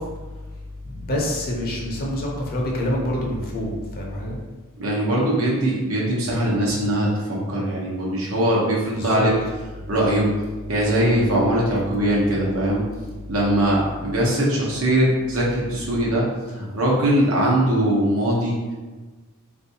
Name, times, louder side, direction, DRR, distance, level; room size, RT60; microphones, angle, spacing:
voice 1, 0.0-4.4 8.9-9.3, left 1 dB, 45° left, -2 dB, 0.7 m, -27 dB
voice 2, 4.8-9.3 9.9-10.3 10.7-12.8 13.3-18.6, right 1 dB, 75° right, -4 dB, 0.9 m, -21 dB
3.5 x 2.6 x 2.8 m, 1.3 s
head